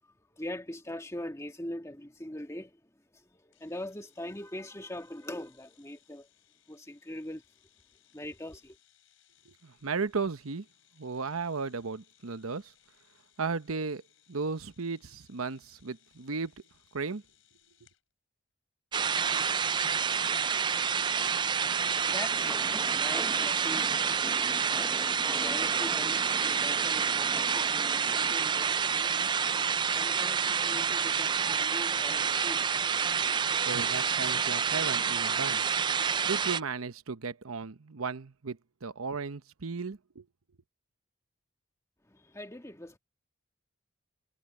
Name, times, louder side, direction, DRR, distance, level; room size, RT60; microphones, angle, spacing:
voice 1, 0.3-2.8 3.1-6.3 6.7-7.4 8.1-8.8 21.4-33.5 33.9-34.0 42.1-43.0, left 1 dB, 15° left, 1.8 m, -43 dB
sound 1, 3.5-18.0, left 12 dB, 65° left, 6.1 m, -67 dB
voice 2, 9.5-10.6 11.0-12.7 13.4-14.0 14.3-16.5 16.9-17.2 33.6-35.6 36.2-40.2, right 4 dB, 85° right, 1.0 m, -35 dB
sound 2, 18.9-36.6, right 6 dB, 20° right, 0.3 m, -28 dB
sound 3, 22.3-28.3, equal, 5° right, 1.0 m, -43 dB
head